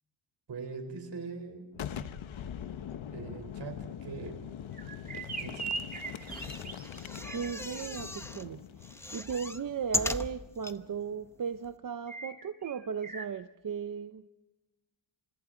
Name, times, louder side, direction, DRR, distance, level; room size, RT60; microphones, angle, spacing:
voice 1, 0.5-1.6 3.1-4.5 5.4-5.8, right 4 dB, 60° right, 6 dB, 4.2 m, -41 dB
Boom, 1.7-11.3, left 9 dB, 75° left, 1.0 m, -43 dB
sound 1, 4.7-7.9 12.1-13.3, right 4 dB, 20° right, 1.9 m, -41 dB
sound 2, 6.2-8.5 8.8-10.8 11.3-11.4 11.6-11.7, left 1 dB, 5° left, 0.7 m, -37 dB
voice 2, 7.3-8.6 9.1-14.2, right 6 dB, 45° right, 9 dB, 0.8 m, -36 dB
29.5 x 26.5 x 3.9 m, 1.1 s
wide cardioid pair, 140°, 47 cm